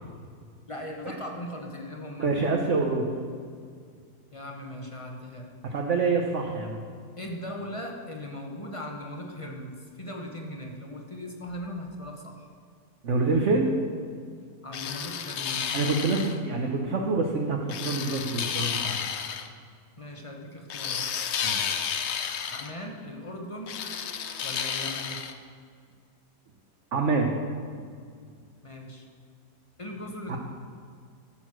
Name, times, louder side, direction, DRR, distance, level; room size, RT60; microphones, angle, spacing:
voice 1, 0.7-2.3 4.3-5.5 7.2-12.5 14.6-15.8 20.0-21.0 22.5-23.8 24.4-25.2 28.6-29.1 29.8-30.4, left 1 dB, 25° left, 1 dB, 0.9 m, -39 dB
voice 2, 2.2-3.1 5.6-6.9 13.0-13.7 15.7-17.6 17.8-19.0 21.4-21.7 26.9-27.3 30.3-30.4, right 3 dB, 55° right, 1 dB, 1.1 m, -26 dB
sound 1, 14.7-16.4 17.7-19.5 20.7-22.7 23.7-25.3, left 7 dB, 60° left, 0.7 m, -31 dB
14.0 x 6.4 x 6.2 m, 2.1 s
omnidirectional pair, 1.8 m